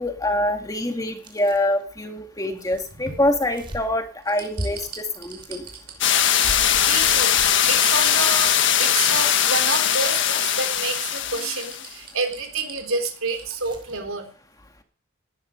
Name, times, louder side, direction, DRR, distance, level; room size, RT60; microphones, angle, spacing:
voice 1, 0.0-5.7, left 1 dB, 15° left, 5 dB, 2.2 m, -25 dB
sound 1, 1.2-1.8 2.2-4.2 4.6-8.6 9.0-9.1 13.6-14.0, equal, 25° right, 3.1 m, -38 dB
sound 2, 2.5-3.8 4.3-13.5 13.9-14.0, right 6 dB, 45° right, 5.5 m, -39 dB
sound 3, 6.0-11.9, left 10 dB, 55° left, 1.6 m, -20 dB
voice 2, 6.8-7.4 7.7-14.3, right 3 dB, 75° right, 6 dB, 3.7 m, -28 dB
19.0 x 12.5 x 5.3 m, 0.42 s
head